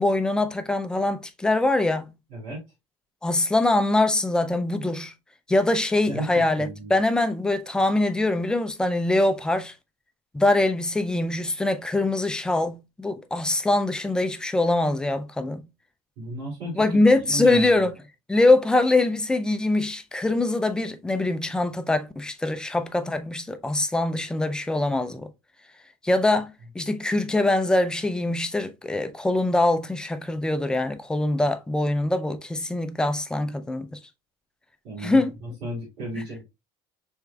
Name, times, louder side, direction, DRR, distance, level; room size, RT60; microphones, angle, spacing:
voice 1, 0.0-2.1 3.2-5.1 5.5-9.7 10.3-15.6 16.8-17.9 18.3-25.3 26.0-34.0 35.0-35.3, left 2 dB, 5° left, 0.3 m, -23 dB
voice 2, 6.1-6.9 16.2-17.8 34.8-36.5, right 1 dB, 60° right, 2.7 m, -34 dB
4.8 x 3.5 x 2.2 m
cardioid pair, 150°, 13 cm